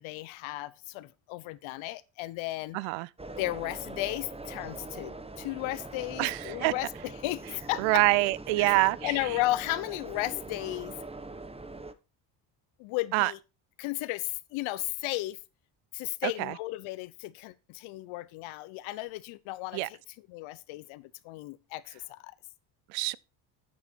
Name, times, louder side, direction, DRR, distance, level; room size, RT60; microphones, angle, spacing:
voice 1, 0.0-2.8 3.4-8.0 8.6-8.8 9.0-10.9 12.8-13.4 13.8-15.4 15.9-20.0 20.3-22.3, left 18 dB, 75° left, 1.0 m, -34 dB
voice 2, 2.7-3.1 6.2-6.7 7.8-9.1 13.1-13.3 16.2-16.5 19.7-19.9 22.9-23.2, right 21 dB, 80° right, 0.6 m, -26 dB
sound 1, 3.2-11.9, right 2 dB, 10° right, 1.2 m, -42 dB
9.4 x 8.6 x 4.5 m
supercardioid pair, 65°, 48 cm